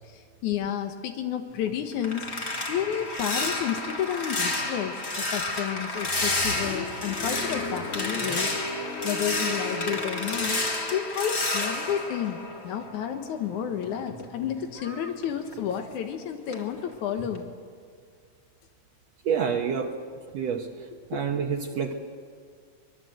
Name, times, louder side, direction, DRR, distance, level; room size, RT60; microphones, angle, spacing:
voice 1, 0.0-2.3 2.7-8.6 9.0-10.6 10.9-17.5 21.1-21.2, left 9 dB, 85° left, 5 dB, 2.6 m, -31 dB
sound 1, 1.5-13.1 13.5-16.1 16.5-16.8 17.2-17.4, left 2 dB, 25° left, 1.9 m, -31 dB
Car, 6.0-11.5, left 2 dB, 50° left, 2.6 m, -36 dB
voice 2, 19.2-20.0 20.3-21.9, right 7 dB, 65° right, 1 dB, 2.3 m, -28 dB
25.5 x 21.5 x 7.8 m, 2.1 s
omnidirectional pair, 3.3 m